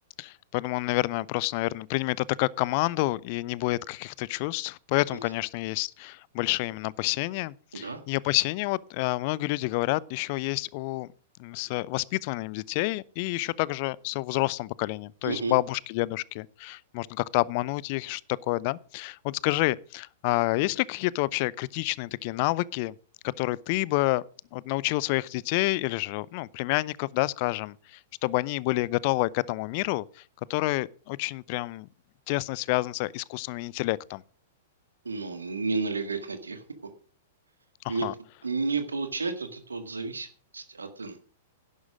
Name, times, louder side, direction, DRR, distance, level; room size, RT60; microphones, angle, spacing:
voice 1, 0.2-11.1 11.4-18.2 18.5-22.9 23.2-24.2 24.5-30.2 30.5-31.9 32.3-34.2 37.8-38.1, left 20 dB, 45° left, 0.5 m, -28 dB
voice 2, 15.2-15.6 35.1-36.6 37.9-38.1 38.4-40.3 40.5-41.2, right 4 dB, 80° right, 1.8 m, -31 dB
11.0 x 11.0 x 5.0 m
figure-of-eight pair, 105°, 0 cm